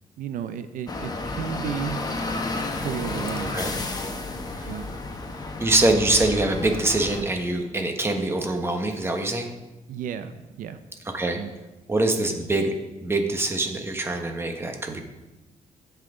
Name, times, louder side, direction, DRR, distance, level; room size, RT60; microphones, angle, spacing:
voice 1, 0.2-2.0 2.8-3.6 4.7-4.9 9.9-10.8 11.4-11.5, right 8 dB, 85° right, 10 dB, 0.6 m, -33 dB
sound 1, 0.9-7.2, left 2 dB, 30° left, 1.1 m, -31 dB
voice 2, 5.6-9.5 11.1-11.4 11.9-12.7 13.0-15.0, right 2 dB, 20° right, 4 dB, 1.2 m, -24 dB
16.0 x 5.8 x 3.8 m, 1.1 s
cardioid pair, 115°, 14 cm